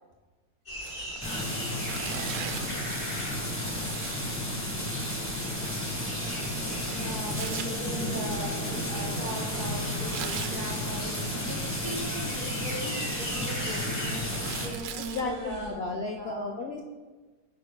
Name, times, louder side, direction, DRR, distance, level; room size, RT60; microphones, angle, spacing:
sound 1, 0.7-15.7, left 1 dB, 35° left, 2.7 m, -41 dB
Tearing, 0.8-2.8 3.6-7.7 9.8-10.5 11.8-12.4 12.7-15.2, right 8 dB, 80° right, 1.1 m, -42 dB
sound 2, 1.2-14.7, left 1 dB, 10° left, 1.2 m, -32 dB
voice 1, 7.0-16.5, right 1 dB, 55° right, -2 dB, 2.3 m, -39 dB
voice 2, 14.9-16.8, left 3 dB, 65° left, 4 dB, 0.6 m, -34 dB
9.3 x 7.7 x 2.2 m, 1.3 s
omnidirectional pair, 1.7 m